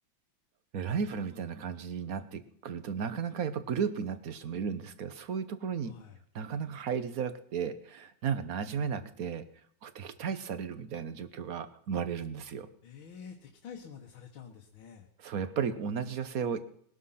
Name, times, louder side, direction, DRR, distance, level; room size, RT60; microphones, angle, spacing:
voice 1, 0.7-5.9 6.3-9.4 9.8-12.7 15.2-16.6, right 6 dB, 50° right, 12 dB, 1.3 m, -34 dB
voice 2, 5.8-6.2 12.8-15.1, left 7 dB, 85° left, 1 dB, 2.1 m, -48 dB
20.0 x 11.5 x 5.7 m, 0.65 s
omnidirectional pair, 2.2 m